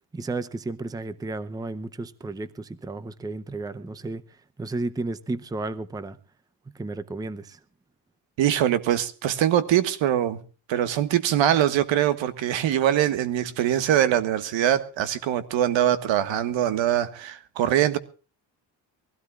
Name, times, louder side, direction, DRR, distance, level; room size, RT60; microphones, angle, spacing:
voice 1, 0.1-4.2 4.6-6.2 6.7-7.6, right 2 dB, 10° right, 0.6 m, -33 dB
voice 2, 8.4-10.4 10.7-18.0, right 11 dB, 85° right, 1.7 m, -23 dB
23.5 x 16.5 x 2.4 m
cardioid pair, 160°, 44 cm